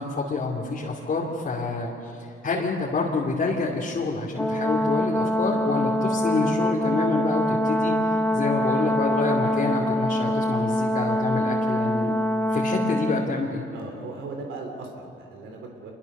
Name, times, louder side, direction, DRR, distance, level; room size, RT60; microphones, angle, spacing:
voice 1, 0.0-8.0 8.3-12.2 12.5-13.6, left 3 dB, 45° left, -4 dB, 2.7 m, -27 dB
Brass instrument, 4.4-13.3, left 1 dB, 10° left, 1.3 m, -24 dB
voice 2, 13.7-15.9, right 3 dB, 85° right, 2 dB, 3.3 m, -38 dB
25.5 x 22.5 x 6.7 m, 2.8 s
cardioid pair, 90°, 20 cm